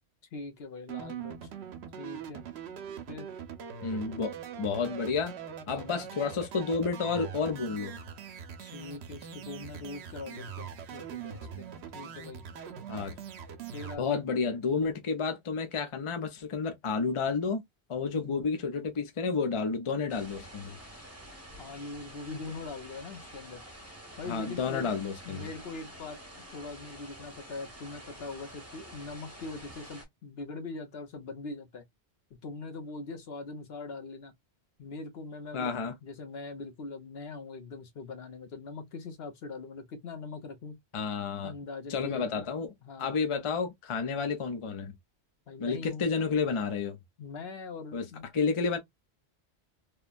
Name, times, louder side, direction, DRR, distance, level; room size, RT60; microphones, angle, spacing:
voice 1, 0.3-1.5 2.0-2.5 3.1-3.3 5.7-6.0 8.6-11.7 11.9-12.4 13.7-14.2 18.1-18.4 21.6-23.6 24.2-24.9 25.2-26.2 26.5-31.8 32.4-34.3 34.8-40.8 41.4-42.5 42.8-43.1 45.5-46.1 47.2-48.3, left 3 dB, 70° left, 1.0 m, -42 dB
sound 1, 0.9-14.0, right 8 dB, 75° right, 0.9 m, -42 dB
voice 2, 3.8-4.3 4.6-5.3 5.7-8.0 12.9-13.2 14.0-17.6 17.9-20.8 24.3-25.5 35.5-35.9 40.9-41.5 41.9-42.7 43.0-44.9 45.6-47.0 47.9-48.1 48.3-48.8, left 5 dB, 35° left, 0.6 m, -30 dB
sound 2, 20.1-30.1, equal, 15° right, 1.2 m, -48 dB
3.1 x 2.2 x 2.4 m
omnidirectional pair, 1.1 m